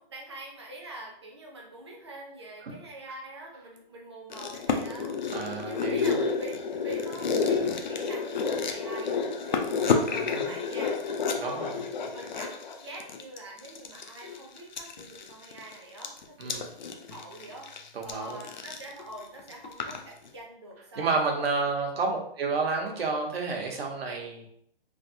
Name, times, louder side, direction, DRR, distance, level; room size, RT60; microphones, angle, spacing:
voice 1, 0.0-9.7 10.1-11.0 11.4-11.7 12.1-17.7 18.0-21.5 21.8-21.9, right 1 dB, 30° right, -1 dB, 0.5 m, -45 dB
sound 1, 4.3-20.0 20.3-20.4, left 5 dB, 50° left, 0.4 m, -30 dB
voice 2, 5.3-6.1 10.1-10.5 11.4-11.7 16.4-16.7 17.9-18.4 21.0-24.6, right 4 dB, 80° right, 1 dB, 1.0 m, -30 dB
3.3 x 2.4 x 2.7 m, 0.66 s
hypercardioid pair, 175°, 30 cm